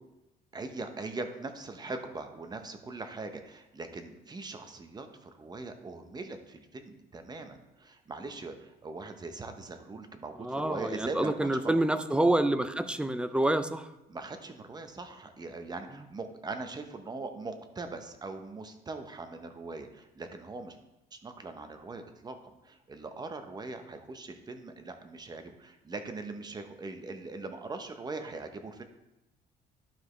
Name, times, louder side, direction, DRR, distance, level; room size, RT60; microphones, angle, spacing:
voice 1, 0.5-11.7 14.1-20.8 21.1-28.8, right 3 dB, 25° right, 7 dB, 0.9 m, -41 dB
voice 2, 10.4-13.9, right 1 dB, 5° right, 11 dB, 0.5 m, -27 dB
11.5 x 4.9 x 3.3 m, 0.92 s
cardioid pair, 110°, 17 cm